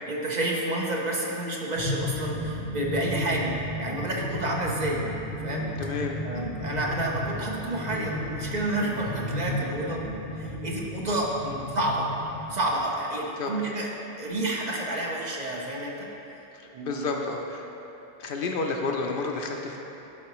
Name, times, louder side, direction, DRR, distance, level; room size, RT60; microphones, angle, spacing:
voice 1, 0.1-5.0 5.4-5.7 6.2-10.1 10.4-11.3 11.7-12.1 12.5-13.9 14.2-16.1 16.7-17.2, right 1 dB, 45° right, -2 dB, 0.7 m, -29 dB
sound 1, 1.8-12.8, left 1 dB, 90° left, 1.1 m, -34 dB
voice 2, 3.0-3.5 5.8-6.2 11.5-11.6 13.4-13.5 16.5-17.7 18.2-19.8, left 3 dB, 65° left, 2 dB, 0.7 m, -31 dB
11.5 x 3.9 x 3.0 m, 3.0 s
omnidirectional pair, 1.1 m